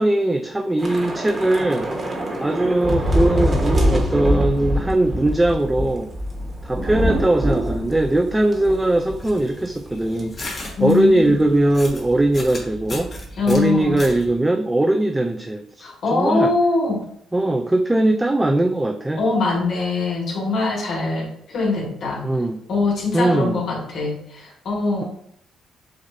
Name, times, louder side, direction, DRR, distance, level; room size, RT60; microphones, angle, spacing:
voice 1, 0.0-1.9 2.4-6.1 6.6-10.5 10.8-13.1 13.5-16.5 17.3-19.2 22.2-22.6 23.1-23.6, right 1 dB, 10° right, 5 dB, 0.3 m, -20 dB
Thunder / Rain, 0.8-9.4 9.6-9.8 10.2-10.4, equal, 30° right, 1.3 m, -24 dB
sound 1, 9.0-14.3, left 1 dB, 35° left, 1.3 m, -36 dB
voice 2, 10.8-11.4 13.4-14.0 15.8-17.0 19.2-22.2 22.7-25.0, left 3 dB, 60° left, -2 dB, 1.8 m, -22 dB
7.2 x 2.5 x 2.7 m, 0.67 s
cardioid pair, 90°, 0 cm